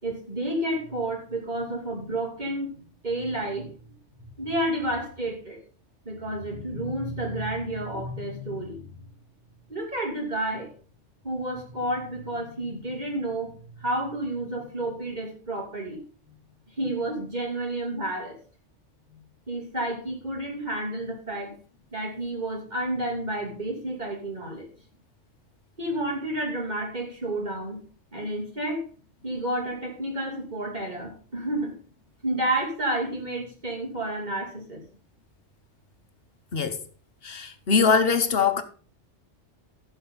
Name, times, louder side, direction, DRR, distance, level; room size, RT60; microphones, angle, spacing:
voice 1, 0.0-3.9 4.4-5.6 6.0-8.8 9.7-10.7 11.2-16.0 16.8-18.4 19.5-21.6 21.9-24.7 25.8-27.8 28.1-28.8 29.2-31.7 32.2-34.8, right 1 dB, 35° right, 3.1 m, -30 dB
voice 2, 36.5-36.8 37.2-38.6, left 5 dB, 55° left, 1.1 m, -22 dB
14.5 x 6.8 x 3.9 m
omnidirectional pair, 1.2 m